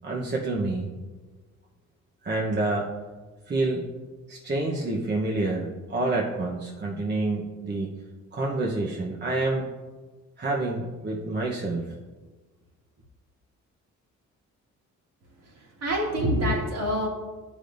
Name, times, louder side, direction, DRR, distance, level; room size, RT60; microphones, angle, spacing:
voice 1, 0.0-0.9 2.2-2.9 3.5-3.9 4.3-7.9 8.3-9.7 10.4-11.8, right 2 dB, 35° right, -2 dB, 1.1 m, -28 dB
voice 2, 15.4-17.1, equal, 55° right, -1 dB, 2.1 m, -26 dB
11.0 x 5.1 x 2.6 m, 1.3 s
cardioid pair, 90°, 30 cm